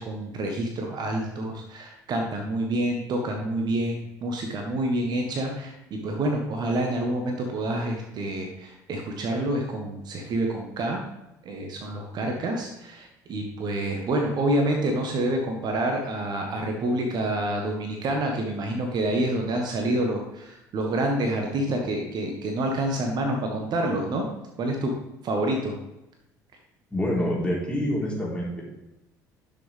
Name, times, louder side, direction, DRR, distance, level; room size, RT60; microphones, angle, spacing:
voice 1, 0.0-11.0 11.4-24.3 24.6-25.7, right 1 dB, 45° right, 2 dB, 1.5 m, -28 dB
voice 2, 26.9-28.6, equal, 10° left, -5 dB, 3.6 m, -26 dB
10.5 x 6.5 x 3.5 m, 0.91 s
figure-of-eight pair, 55°, 10 cm